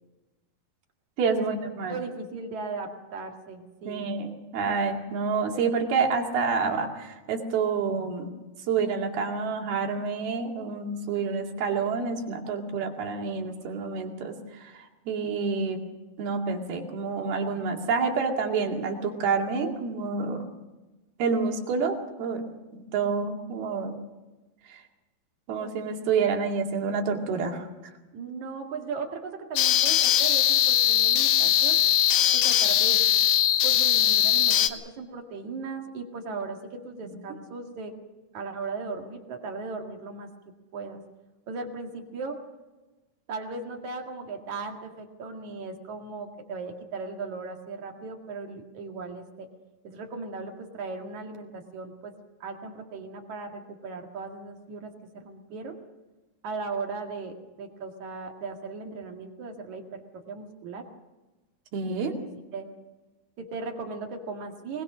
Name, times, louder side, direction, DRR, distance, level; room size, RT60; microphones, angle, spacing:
voice 1, 1.2-2.0 3.9-8.3 8.7-14.4 14.6-15.8 16.2-20.5 21.2-22.5 22.9-24.0 24.7-24.8 25.5-27.7 37.0-37.1 61.7-62.1, right 5 dB, 70° right, 2 dB, 4.2 m, -28 dB
voice 2, 1.9-4.1 28.1-31.8 32.3-33.0 33.6-37.9 38.3-40.3 40.7-41.0 41.5-42.4 43.3-49.5 49.8-52.1 52.4-55.8 56.4-60.0 60.3-60.9 61.9-62.0 62.5-62.7 63.4-64.8, right 4 dB, 50° right, 2 dB, 3.1 m, -37 dB
sound 1, 29.6-34.7, left 11 dB, 70° left, 2.7 m, -21 dB
23.0 x 20.5 x 6.3 m, 1.1 s
omnidirectional pair, 4.6 m